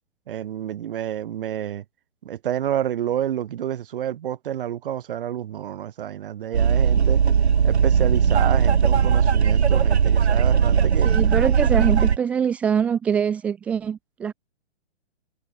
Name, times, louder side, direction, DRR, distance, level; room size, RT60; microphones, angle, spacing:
voice 1, 0.3-1.8 2.2-7.2 7.6-11.1, right 10 dB, 55° right, 6.2 m, -29 dB
sound 1, 6.5-12.2, right 7 dB, 80° right, 1.2 m, -18 dB
voice 2, 11.0-14.3, right 7 dB, 5° right, 0.4 m, -23 dB
hypercardioid pair, 130°, 32 cm